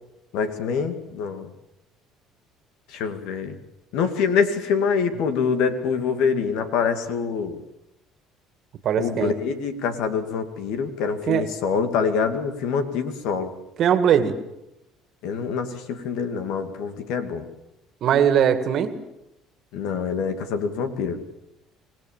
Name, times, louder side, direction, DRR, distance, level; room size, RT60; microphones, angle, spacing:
voice 1, 0.3-1.5 2.9-3.6 3.9-7.6 9.0-13.5 15.2-17.4 19.7-21.2, left 6 dB, 75° left, 8 dB, 2.3 m, -25 dB
voice 2, 8.8-9.3 11.3-11.5 13.8-14.4 18.0-18.9, right 8 dB, 55° right, 10 dB, 2.0 m, -20 dB
25.5 x 18.0 x 7.3 m, 0.90 s
supercardioid pair, 95°, 0 cm